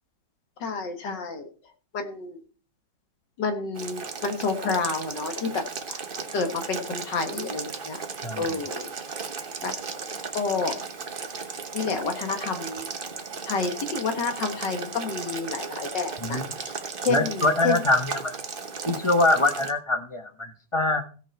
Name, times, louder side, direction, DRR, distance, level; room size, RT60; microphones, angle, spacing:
voice 1, 0.6-1.5 1.9-2.4 3.4-6.0 6.3-8.0 8.4-8.9 9.6-9.7 10.3-10.8 11.7-12.9 13.5-17.8, left 4 dB, 75° left, 6 dB, 2.2 m, -29 dB
Boiling, 3.7-19.7, right 5 dB, 35° right, 1.0 m, -35 dB
voice 2, 8.2-8.6 16.2-16.5 17.1-18.4 18.9-21.0, left 2 dB, 25° left, 7 dB, 0.8 m, -24 dB
17.0 x 5.9 x 4.6 m, 0.39 s
omnidirectional pair, 1.9 m